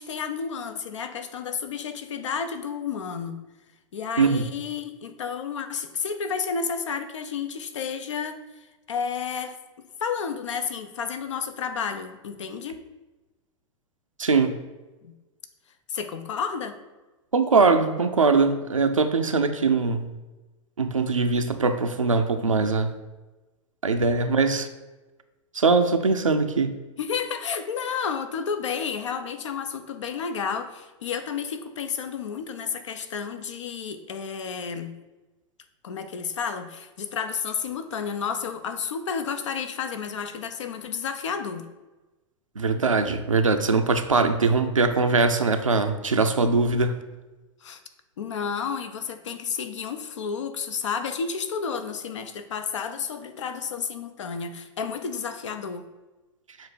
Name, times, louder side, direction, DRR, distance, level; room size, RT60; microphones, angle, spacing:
voice 1, 0.0-3.4 3.9-8.4 8.9-12.8 15.0-15.1 15.9-16.8 27.0-34.9 35.8-41.6 47.6-47.8 48.2-55.8, left 6 dB, 65° left, 9 dB, 0.6 m, -31 dB
voice 2, 14.2-14.5 17.3-20.1 20.8-22.9 23.8-24.7 25.5-26.7 42.6-47.0, right 4 dB, 85° right, 6 dB, 0.5 m, -21 dB
7.0 x 2.6 x 5.6 m, 1.1 s
figure-of-eight pair, 95°, 16 cm